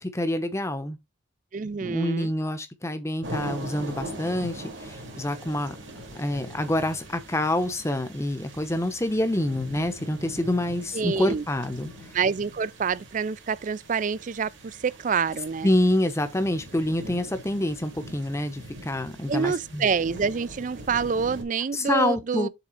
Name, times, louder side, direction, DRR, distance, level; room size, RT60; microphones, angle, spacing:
voice 1, 0.0-1.0 1.8-11.9 15.6-19.9 21.7-22.5, left 1 dB, 15° left, 0.9 m, -27 dB
voice 2, 1.5-2.3 10.9-11.4 12.1-15.7 19.3-22.5, right 5 dB, 45° right, 0.4 m, -27 dB
sound 1, 3.2-21.4, right 1 dB, 85° right, 2.7 m, -42 dB
7.1 x 3.7 x 5.0 m
head